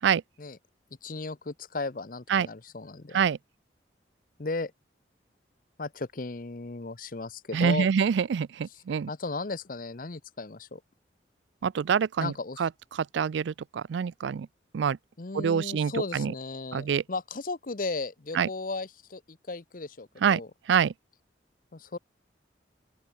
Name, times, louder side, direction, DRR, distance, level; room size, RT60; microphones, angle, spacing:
voice 1, 1.0-3.2 4.4-4.7 5.8-7.9 9.1-10.8 12.2-12.6 15.2-20.5 21.7-22.0, left 3 dB, 50° left, 0.8 m, -35 dB
voice 2, 7.5-9.1 11.6-12.3 12.6-14.5 14.7-15.0 15.3-16.3 16.7-17.0 18.3-18.5 20.2-20.4 20.7-20.9, right 7 dB, 75° right, 0.4 m, -26 dB
open air
head